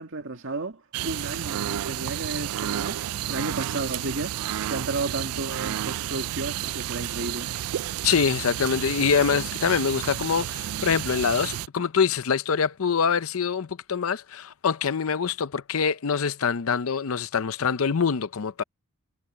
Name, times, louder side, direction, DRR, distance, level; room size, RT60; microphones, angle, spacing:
voice 1, 0.0-3.0 3.3-7.5, right 3 dB, 60° right, 2.2 m, -33 dB
sound 1, 0.9-11.7, right 11 dB, 85° right, 0.4 m, -31 dB
voice 2, 8.0-18.6, left 6 dB, 70° left, 0.6 m, -25 dB
head